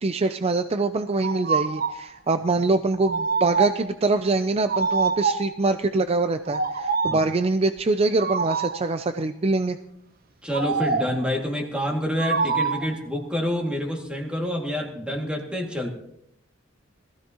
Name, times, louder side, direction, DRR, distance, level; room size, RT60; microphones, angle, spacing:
voice 1, 0.0-9.8, right 3 dB, 30° right, 9 dB, 0.5 m, -24 dB
sound 1, 1.2-2.0 3.0-3.9 4.7-5.6 6.5-7.3 8.2-8.9 10.5-11.2 12.2-13.0, right 5 dB, 50° right, 0.9 m, -25 dB
voice 2, 10.4-15.9, equal, 5° right, 1 dB, 2.1 m, -27 dB
20.5 x 15.0 x 2.9 m, 0.74 s
head